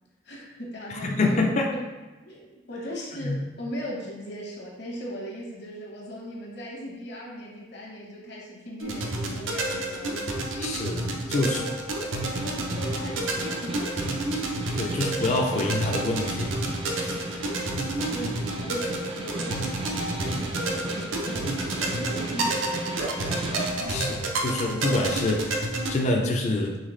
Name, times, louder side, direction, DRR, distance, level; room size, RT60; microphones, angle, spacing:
voice 1, 0.2-1.4 1.7-1.8 2.2-3.3 3.6-10.3 11.3-11.8 12.2-14.2 18.0-19.7 20.2-22.8, equal, 60° left, -3 dB, 1.0 m, -38 dB
voice 2, 0.9-1.7 3.2-3.4 10.6-11.6 14.8-16.5 16.9-17.5 23.9-26.8, left 2 dB, 35° left, 1 dB, 0.4 m, -27 dB
sound 1, 8.8-25.9, right 2 dB, 80° right, 0.6 m, -30 dB
Snare drum, 12.0-23.9, right 2 dB, 25° right, 0.4 m, -36 dB
4.0 x 3.4 x 3.1 m, 1.2 s
head